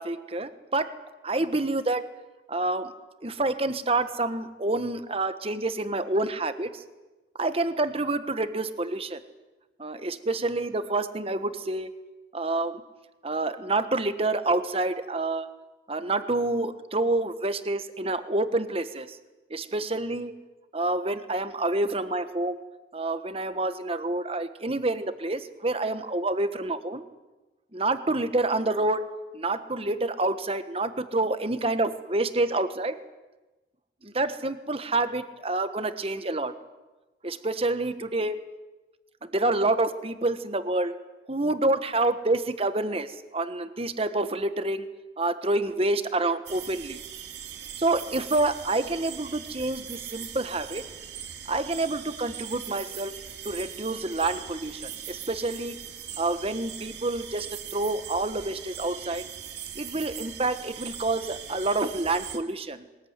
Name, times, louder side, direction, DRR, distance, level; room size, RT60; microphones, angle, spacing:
voice 1, 0.0-2.1 2.5-2.9 3.2-6.8 7.4-9.2 9.8-11.9 12.3-12.8 13.2-15.5 15.9-19.2 19.5-20.3 20.7-22.6 22.9-27.0 27.7-29.0 29.3-33.0 34.0-36.5 37.2-38.4 39.2-40.9 41.3-44.8 45.2-47.0 47.8-50.8 51.5-53.1 53.4-55.8 56.2-59.2 59.7-62.9, right 2 dB, 30° right, 11 dB, 1.3 m, -28 dB
sound 1, 46.5-62.4, right 9 dB, 70° right, 2.3 m, -41 dB
22.0 x 20.5 x 9.6 m, 1.1 s
head